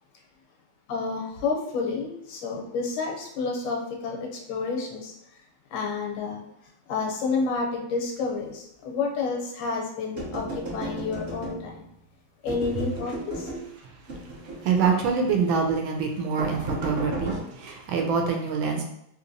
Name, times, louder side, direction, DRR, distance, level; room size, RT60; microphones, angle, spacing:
voice 1, 0.9-5.1 5.7-6.4 6.9-11.8 12.4-13.5, left 4 dB, 80° left, 1 dB, 1.4 m, -30 dB
sound 1, 10.2-11.9 12.5-13.7 14.1-15.1 15.5-15.7 16.4-17.4, right 1 dB, 55° right, 0.7 m, -35 dB
voice 2, 14.4-18.8, right 5 dB, 90° right, 3 dB, 1.4 m, -25 dB
3.4 x 2.8 x 2.6 m, 0.76 s
omnidirectional pair, 2.1 m